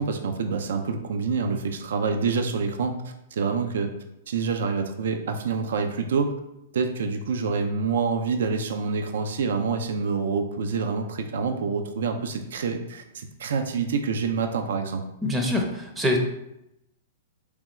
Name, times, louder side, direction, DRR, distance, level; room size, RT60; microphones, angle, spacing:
voice 1, 0.0-3.0 3.3-3.9 4.3-6.3 6.7-15.0, right 5 dB, 70° right, 6 dB, 0.4 m, -27 dB
voice 2, 15.2-16.2, left 1 dB, 15° right, 2 dB, 0.6 m, -24 dB
3.5 x 3.4 x 3.0 m, 0.84 s
hypercardioid pair, 110°, 0 cm